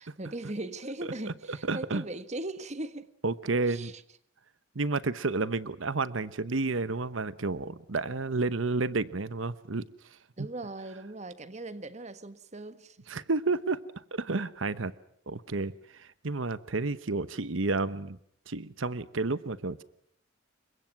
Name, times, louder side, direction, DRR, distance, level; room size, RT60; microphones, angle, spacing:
voice 1, 0.0-3.1 3.7-4.0 10.4-13.0, right 2 dB, 35° right, 1.5 m, -39 dB
voice 2, 1.5-2.0 3.2-3.9 4.7-9.8 13.1-13.8 14.1-14.9 15.3-18.2 18.5-19.8, right 3 dB, 85° right, 1.0 m, -31 dB
29.5 x 24.0 x 6.0 m
head